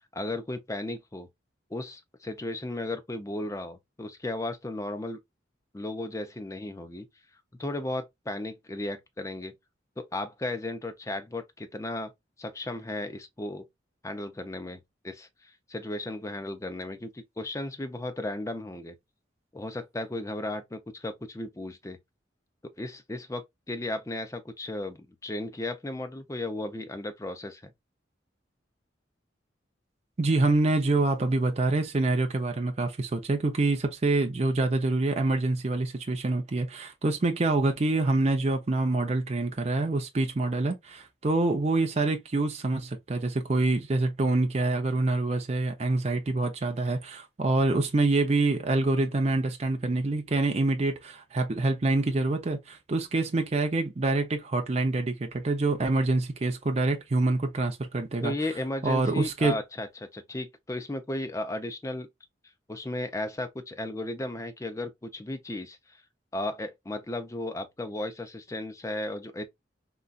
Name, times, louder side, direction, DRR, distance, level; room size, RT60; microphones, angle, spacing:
voice 1, 0.1-1.3 1.7-5.2 5.7-7.1 7.6-9.5 10.0-12.1 12.4-13.6 14.0-19.0 19.5-22.0 22.8-27.7 58.2-62.1 62.7-66.0 66.3-69.4, left 1 dB, 15° left, 0.5 m, -35 dB
voice 2, 30.2-58.3 58.8-59.6, right 2 dB, 35° right, 0.5 m, -26 dB
3.8 x 2.2 x 2.3 m
head